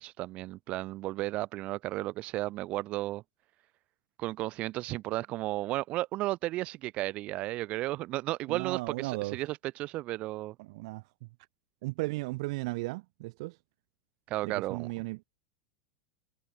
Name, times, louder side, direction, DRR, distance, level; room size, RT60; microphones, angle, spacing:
voice 1, 0.0-3.2 4.2-10.6 14.3-14.9, right 17 dB, 25° right, 2.0 m, -34 dB
voice 2, 8.5-9.4 10.6-11.3 11.8-13.6 14.4-15.2, right 23 dB, 45° right, 1.4 m, -36 dB
supercardioid pair, 180°, 4 cm